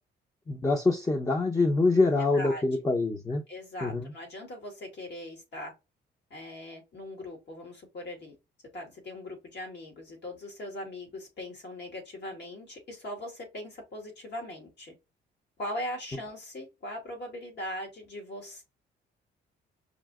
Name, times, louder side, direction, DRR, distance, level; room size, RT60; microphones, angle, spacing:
voice 1, 0.5-3.4 3.8-4.1, left 3 dB, 20° left, 0.8 m, -25 dB
voice 2, 3.5-5.7 6.3-8.4 8.7-14.9 15.6-18.6, left 1 dB, 60° left, 2.2 m, -40 dB
5.1 x 2.8 x 2.3 m
cardioid pair, 90°, 20 cm